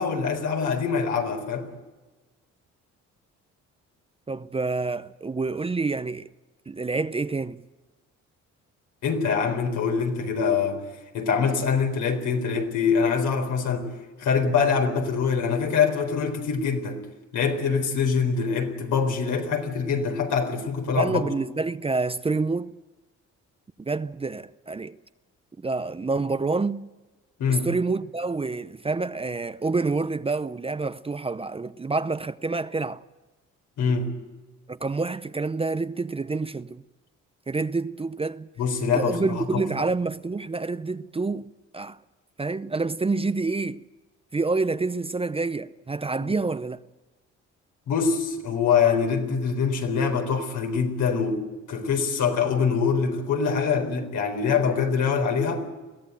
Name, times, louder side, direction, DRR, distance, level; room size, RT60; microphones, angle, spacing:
voice 1, 0.0-1.7 9.0-10.8 11.1-13.9 14.2-17.0 17.3-21.3 27.4-27.7 33.8-34.1 38.6-39.6 46.2-46.3 47.9-55.6, left 6 dB, 80° left, 4.2 m, -24 dB
voice 2, 4.3-6.3 6.7-7.6 21.0-22.8 23.8-25.0 25.6-26.9 27.5-33.0 34.7-36.8 37.5-38.5 38.9-42.0 42.4-43.8 44.3-46.8, right 3 dB, 20° right, 0.6 m, -28 dB
22.5 x 15.5 x 9.3 m
cardioid pair, 90°, 30 cm